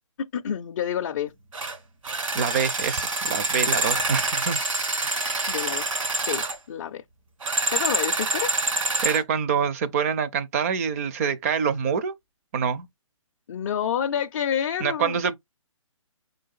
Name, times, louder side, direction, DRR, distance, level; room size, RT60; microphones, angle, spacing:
voice 1, 0.2-1.3 5.5-7.0 7.7-8.5 13.5-15.2, left 9 dB, 35° left, 0.4 m, -29 dB
sound 1, 1.5-1.8 2.0-6.6 7.4-9.2, right 2 dB, 70° right, 1.6 m, -26 dB
voice 2, 2.3-4.6 5.0-5.2 9.0-12.1 12.5-12.9 14.8-15.3, right 6 dB, 30° right, 0.5 m, -26 dB
4.9 x 3.8 x 2.4 m
hypercardioid pair, 150°, 17 cm